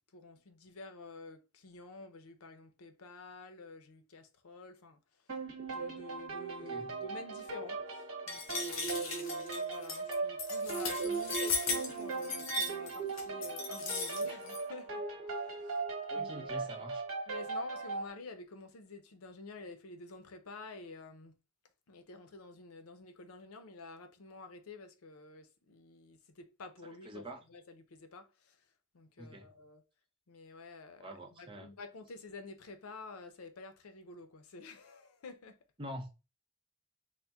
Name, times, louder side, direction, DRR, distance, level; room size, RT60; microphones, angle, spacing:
voice 1, 0.1-5.0 5.7-15.8 16.1-16.7 17.3-21.4 21.9-28.6 28.9-29.8 30.3-35.6, left 3 dB, 85° left, 0.6 m, -50 dB
sound 1, 5.3-18.1, right 4 dB, 85° right, 1.1 m, -38 dB
sound 2, 8.3-14.6, left 3 dB, 65° left, 0.9 m, -37 dB
voice 2, 16.1-17.0 27.0-27.4 29.2-29.5 31.0-31.7 35.8-36.1, equal, 25° right, 0.6 m, -45 dB
4.0 x 2.1 x 3.5 m
head